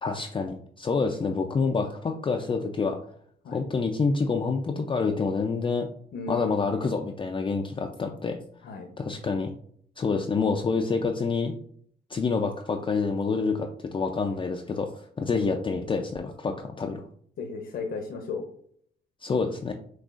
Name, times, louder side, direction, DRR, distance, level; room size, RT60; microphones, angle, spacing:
voice 1, 0.0-3.0 3.5-5.9 6.3-8.4 9.0-9.5 10.0-11.5 12.1-17.0 19.2-19.7, left 4 dB, 25° left, 3 dB, 0.4 m, -27 dB
voice 2, 6.1-6.7 8.6-8.9 15.3-15.4 17.4-18.5, left 4 dB, 60° left, 4 dB, 0.8 m, -35 dB
6.1 x 2.4 x 2.4 m, 0.62 s
cardioid pair, 90°, 20 cm